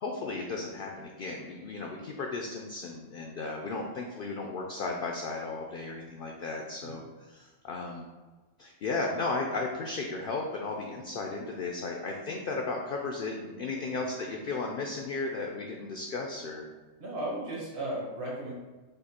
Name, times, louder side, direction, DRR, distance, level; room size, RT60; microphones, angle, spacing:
voice 1, 0.0-8.1 8.6-16.7, left 3 dB, 65° left, 1 dB, 0.5 m, -35 dB
voice 2, 13.7-14.1 17.0-18.5, right 1 dB, 45° right, -4 dB, 1.3 m, -36 dB
5.4 x 2.1 x 4.2 m, 1.3 s
omnidirectional pair, 1.4 m